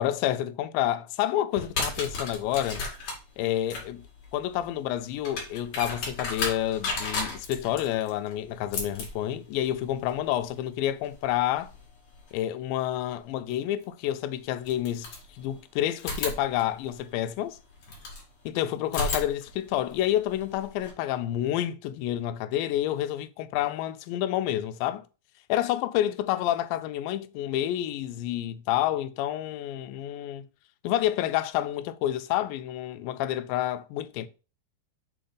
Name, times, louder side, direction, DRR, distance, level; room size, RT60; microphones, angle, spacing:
voice 1, 0.0-2.9 3.4-4.0 4.3-11.7 12.3-17.6 18.6-25.0 25.5-30.5 30.8-34.3, left 12 dB, 80° left, 2.2 m, -29 dB
sound 1, 1.5-12.3 13.8-13.9 14.6-15.6 16.0-18.3 18.8-20.9, left 3 dB, 50° left, 2.8 m, -36 dB
6.9 x 4.1 x 3.8 m
omnidirectional pair, 4.3 m